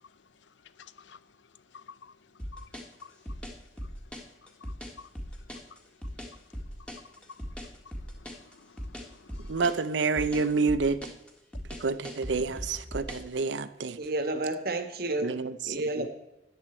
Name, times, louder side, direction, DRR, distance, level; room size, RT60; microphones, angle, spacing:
voice 1, 0.8-1.2 1.7-2.1 2.5-2.7 3.0-3.1 4.6-5.1 5.7-5.8 8.3-9.5, left 5 dB, 75° left, 0.6 m, -51 dB
sound 1, 2.4-13.3, equal, 5° left, 1.7 m, -39 dB
voice 2, 9.4-11.1 11.7-14.0 15.2-16.1, right 4 dB, 80° right, 0.7 m, -29 dB
voice 3, 14.0-15.2 15.7-16.1, right 2 dB, 55° right, 1.5 m, -30 dB
13.5 x 9.9 x 4.4 m
head